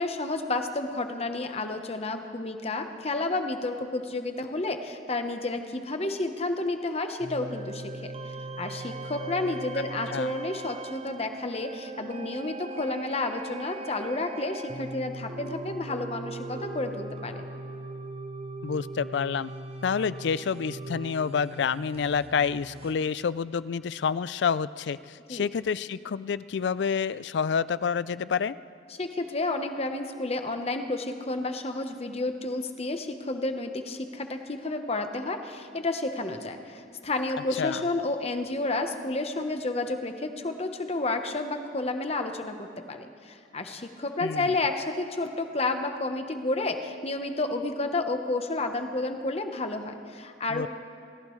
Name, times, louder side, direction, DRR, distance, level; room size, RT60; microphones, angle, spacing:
voice 1, 0.0-8.1 8.6-17.5 25.3-25.5 29.0-50.7, left 2 dB, 35° left, 6 dB, 1.0 m, -31 dB
sound 1, 7.2-22.9, right 2 dB, 35° right, 0.7 m, -39 dB
voice 2, 18.6-19.5 19.8-28.6 37.6-37.9 44.2-44.5 50.5-50.7, left 6 dB, 75° left, 17 dB, 0.4 m, -28 dB
29.5 x 15.0 x 3.2 m, 2.3 s
head